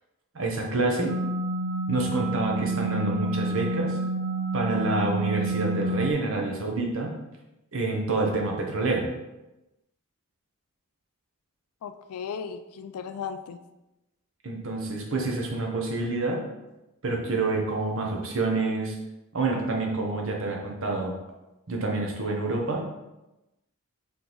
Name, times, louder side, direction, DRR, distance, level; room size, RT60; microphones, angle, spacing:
voice 1, 0.3-1.1 1.9-4.0 4.5-7.2 7.7-9.1 14.4-16.4 17.0-19.0 19.3-21.1 21.7-22.9, right 2 dB, 60° right, 0 dB, 0.8 m, -27 dB
sound 1, 1.1-6.1, right 2 dB, 85° right, 0.3 m, -29 dB
voice 2, 11.8-13.6, left 6 dB, 80° left, 9 dB, 0.3 m, -36 dB
3.5 x 3.0 x 3.9 m, 0.98 s
head